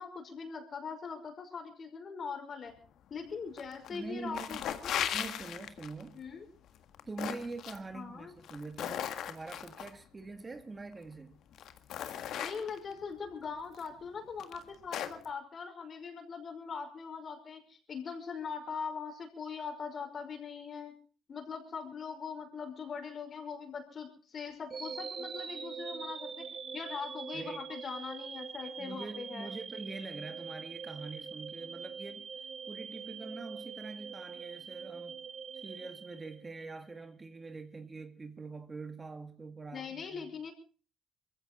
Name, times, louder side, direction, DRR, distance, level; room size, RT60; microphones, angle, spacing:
voice 1, 0.0-2.7 3.1-5.1 6.1-6.4 7.9-8.3 12.4-20.9 21.3-26.4 26.7-29.6 39.7-40.5, left 5 dB, 50° left, 5.6 m, -41 dB
sound 1, 3.6-4.0 4.3-6.0 6.7-7.8 8.4-9.9 10.9-11.0 11.5-12.9 13.7-13.9 14.4-15.3, left 10 dB, 70° left, 1.6 m, -37 dB
voice 2, 3.9-4.9 5.1-6.2 7.1-11.4 27.3-27.6 28.8-32.3 32.7-35.2 35.5-40.3, right 3 dB, 25° right, 1.9 m, -44 dB
sound 2, 24.7-36.8, right 6 dB, 45° right, 1.4 m, -43 dB
22.5 x 15.5 x 4.2 m
supercardioid pair, 80°, 0 cm